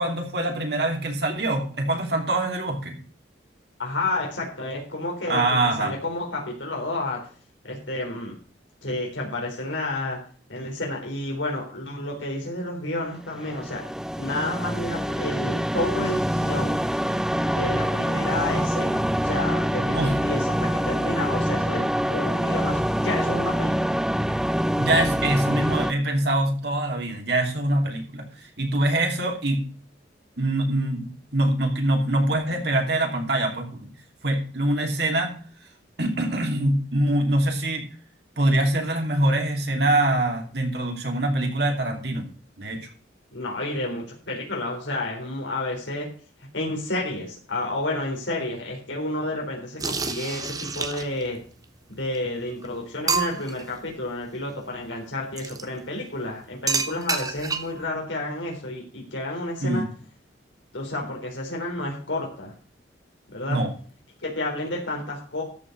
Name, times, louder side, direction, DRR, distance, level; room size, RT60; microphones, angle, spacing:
voice 1, 0.0-3.0 5.3-5.9 19.8-20.2 24.8-29.7 30.4-33.9 34.2-35.4 36.0-37.9 38.4-42.2 42.6-42.8 59.6-59.9 63.5-63.7, right 1 dB, 60° right, 2 dB, 2.9 m, -24 dB
voice 2, 3.8-5.4 5.8-7.2 7.6-8.4 8.8-10.2 10.5-13.8 14.2-16.8 17.5-24.0 43.3-46.1 46.5-51.4 51.9-59.8 60.7-62.5 63.3-63.6 64.2-65.4, left 2 dB, 85° left, -1 dB, 3.8 m, -30 dB
sound 1, 13.3-25.9, equal, 5° right, 0.5 m, -25 dB
sound 2, 49.8-51.3 52.2-52.3 52.6-52.7 53.1-53.6 55.4-55.6 56.7-57.8, right 5 dB, 20° right, 0.8 m, -28 dB
13.5 x 5.5 x 6.5 m, 0.42 s
head